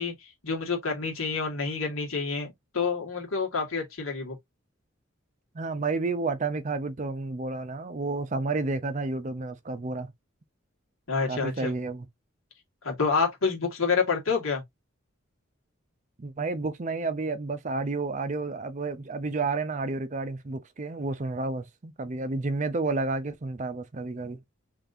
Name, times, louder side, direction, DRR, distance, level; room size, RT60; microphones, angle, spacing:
voice 1, 0.0-2.5 2.7-4.4 11.1-11.7 12.8-14.6, left 5 dB, 80° left, 1.9 m, -28 dB
voice 2, 5.5-10.1 11.3-12.1 16.2-24.4, right 3 dB, 35° right, 0.5 m, -31 dB
3.9 x 3.3 x 2.6 m
head